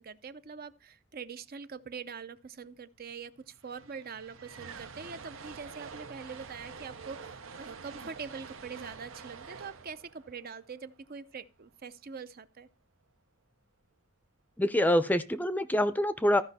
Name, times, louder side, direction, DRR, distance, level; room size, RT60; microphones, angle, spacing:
voice 1, 0.0-12.7, right 5 dB, 45° right, 0.6 m, -44 dB
sound 1, 3.1-3.2 3.4-11.6, right 5 dB, 80° right, 0.8 m, -47 dB
voice 2, 14.6-16.4, left 1 dB, 10° left, 0.5 m, -26 dB
14.5 x 5.2 x 4.1 m
head